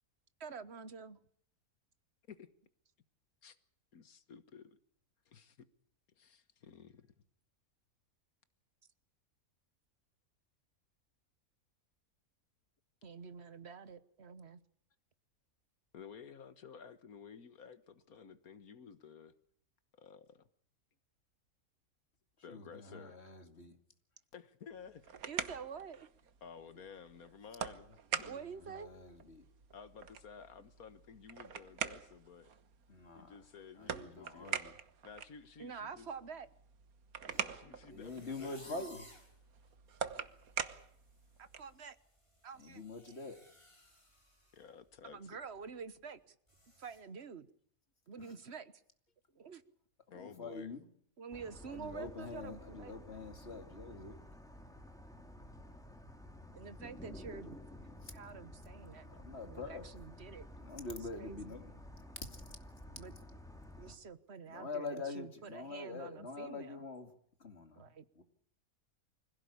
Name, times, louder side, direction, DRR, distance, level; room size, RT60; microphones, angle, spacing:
voice 1, 0.4-1.2 13.0-14.6 25.3-26.1 28.2-28.9 35.6-36.5 41.4-42.0 42.4-42.8 45.0-46.3 46.8-47.5 48.1-48.7 49.3-49.6 51.2-53.0 56.5-57.6 58.1-59.1 59.4-60.5 61.2-61.6 62.9-63.1 63.8-66.8 67.8-68.2, right 6 dB, 50° right, 1.4 m, -48 dB
voice 2, 3.9-4.8 5.3-5.6 6.2-7.1 15.9-19.3 20.0-20.4 22.4-23.2 24.3-25.1 26.4-28.3 29.7-32.5 33.1-34.7 35.0-36.1 37.3-38.9 44.5-45.4 49.3-49.4 50.1-50.7, left 6 dB, 75° left, 1.8 m, -53 dB
voice 3, 22.5-23.8 28.2-28.4 28.7-29.4 32.9-33.4 33.8-34.7 37.3-37.4 37.9-39.0 42.6-43.4 48.2-48.3 50.1-50.9 51.7-54.2 59.2-59.9 60.6-61.7 62.3-62.4 64.5-67.1 67.4-68.2, left 3 dB, 45° left, 2.7 m, -45 dB
sound 1, 24.7-41.8, right 7 dB, 75° right, 1.7 m, -45 dB
sound 2, 38.0-39.3 39.9-40.0 40.4-40.7 40.9-44.6 44.9-45.1 45.5-45.6 46.5-47.0, left 1 dB, 20° left, 6.9 m, -59 dB
sound 3, 51.3-64.0, left 1 dB, ahead, 3.5 m, -52 dB
25.0 x 16.5 x 8.5 m
omnidirectional pair, 1.5 m